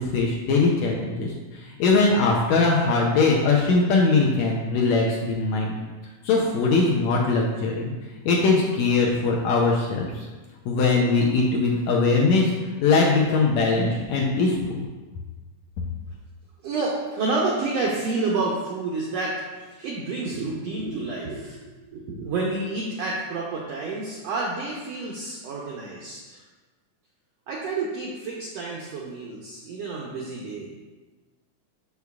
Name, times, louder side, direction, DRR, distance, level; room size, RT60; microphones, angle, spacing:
voice 1, 0.0-5.7 6.2-7.9 8.2-10.3 10.6-12.5 12.8-14.9, left 3 dB, 75° left, -2 dB, 1.7 m, -21 dB
voice 2, 16.6-26.4 27.5-30.7, right 3 dB, 90° right, -3 dB, 1.4 m, -29 dB
6.7 x 6.3 x 2.3 m, 1.3 s
omnidirectional pair, 3.7 m